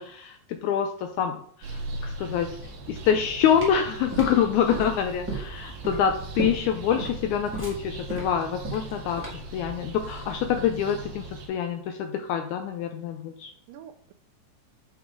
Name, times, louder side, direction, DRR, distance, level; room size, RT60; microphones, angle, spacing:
voice 1, 0.0-2.6 2.9-13.5, left 8 dB, 85° left, 6 dB, 1.7 m, -26 dB
sound 1, 1.6-11.5, right 2 dB, 65° right, 1.9 m, -39 dB
sound 2, 3.5-9.6, right 3 dB, 15° right, 0.3 m, -35 dB
voice 2, 4.5-4.9 5.9-6.3 13.7-14.1, right 9 dB, 85° right, 9 dB, 2.3 m, -47 dB
5.9 x 5.6 x 3.6 m, 0.62 s
omnidirectional pair, 3.9 m